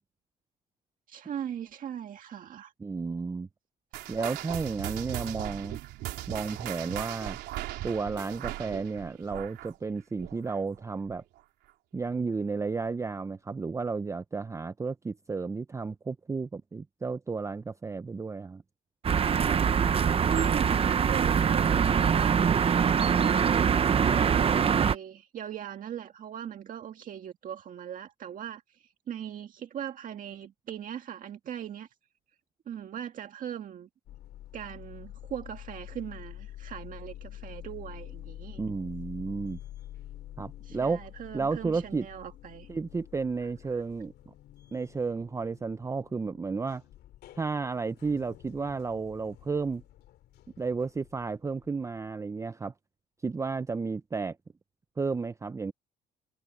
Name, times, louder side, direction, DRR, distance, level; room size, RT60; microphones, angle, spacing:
voice 1, 1.1-2.7 20.3-23.6 24.1-31.9 32.6-33.9 34.5-38.6 40.6-42.7 43.7-43.8, right 9 dB, 55° right, 1.8 m, -40 dB
voice 2, 2.8-3.5 4.1-5.8 6.3-7.4 7.8-11.2 11.9-18.6 38.6-39.6 40.4-41.0 41.3-42.1 42.7-44.3 44.7-46.8 47.4-49.8 50.6-52.7 53.2-54.4 55.0-55.7, right 4 dB, 15° right, 0.6 m, -32 dB
sound 1, 3.9-10.8 11.1-11.4 12.0-12.1 12.9-13.0, right 16 dB, 85° right, 3.7 m, -38 dB
sound 2, 19.0-25.0, right 7 dB, 35° right, 0.9 m, -23 dB
sound 3, 34.1-52.1, left 13 dB, 75° left, 2.7 m, -48 dB
cardioid pair, 110°, 17 cm